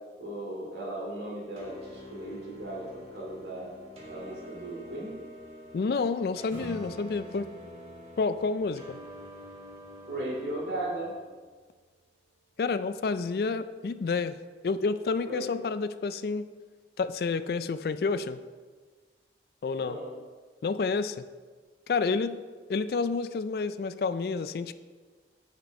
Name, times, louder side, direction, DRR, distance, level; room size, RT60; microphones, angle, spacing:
voice 1, 0.2-2.9 3.1-3.7 4.1-5.2 10.1-11.1 15.2-15.4 19.8-20.1, right 1 dB, 75° right, -3 dB, 2.5 m, -36 dB
sound 1, 1.6-11.2, left 1 dB, 35° right, 1.6 m, -47 dB
voice 2, 5.7-7.5 8.2-9.0 12.6-14.3 14.6-16.5 17.0-18.4 19.6-20.0 20.6-21.2 21.9-22.4 22.7-24.7, left 4 dB, 55° left, 12 dB, 0.3 m, -29 dB
Acoustic guitar / Strum, 6.5-11.7, equal, 15° right, 2.1 m, -48 dB
8.9 x 5.9 x 4.2 m, 1.4 s
head